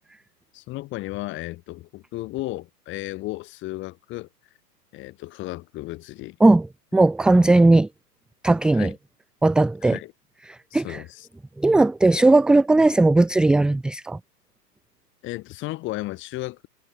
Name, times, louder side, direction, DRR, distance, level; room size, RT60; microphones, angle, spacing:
voice 1, 0.5-4.3 4.9-6.4 8.7-8.9 9.8-10.1 10.7-11.3 15.2-16.7, left 18 dB, 25° left, 3.1 m, -34 dB
voice 2, 6.9-7.9 8.4-8.9 9.4-10.0 10.5-11.0 11.6-14.2, right 2 dB, ahead, 0.8 m, -17 dB
hypercardioid pair, 140°, 49 cm